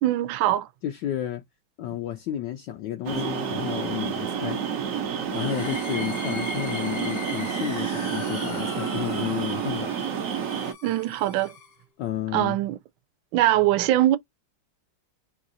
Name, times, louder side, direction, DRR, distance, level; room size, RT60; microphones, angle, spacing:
voice 1, 0.0-0.7 10.8-11.5 12.3-12.8 13.3-14.2, right 14 dB, 75° right, 1.3 m, -22 dB
voice 2, 0.8-1.4 1.8-4.6 5.3-10.0 12.0-12.6, left 12 dB, 70° left, 1.1 m, -32 dB
sound 1, 3.0-10.7, right 8 dB, 55° right, 1.0 m, -29 dB
Electric guitar / Bass guitar, 3.1-9.5, left 7 dB, 90° left, 0.7 m, -44 dB
sound 2, 5.2-11.8, left 5 dB, 40° left, 0.9 m, -40 dB
4.5 x 2.3 x 3.8 m
omnidirectional pair, 2.3 m